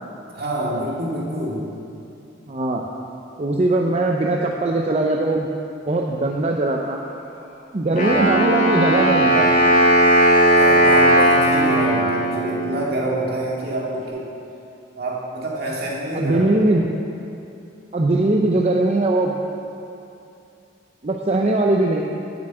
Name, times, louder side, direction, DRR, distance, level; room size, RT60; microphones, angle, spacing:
voice 1, 0.3-1.7 10.5-14.3 15.0-16.8, right 1 dB, 60° right, -4 dB, 2.1 m, -26 dB
voice 2, 2.5-2.8 3.4-5.5 5.9-7.0 7.7-9.5 16.1-16.8 17.9-19.3 21.0-22.0, right 2 dB, 35° right, 0 dB, 0.6 m, -20 dB
Wind instrument woodwind instrument, 8.0-12.9, right 1 dB, 50° left, 2.3 m, -16 dB
7.6 x 7.1 x 8.1 m, 2.7 s
head